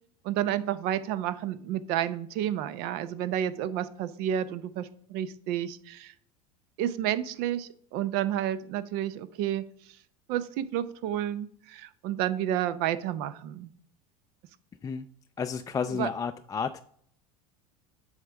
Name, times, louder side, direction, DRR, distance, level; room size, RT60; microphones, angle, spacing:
voice 1, 0.2-6.1 6.8-9.6 10.3-13.7 15.9-16.1, right 11 dB, 55° right, 15 dB, 0.6 m, -30 dB
voice 2, 15.4-16.8, left 6 dB, 20° left, 7 dB, 0.3 m, -31 dB
7.9 x 3.7 x 6.2 m, 0.62 s
hypercardioid pair, 80°, 19 cm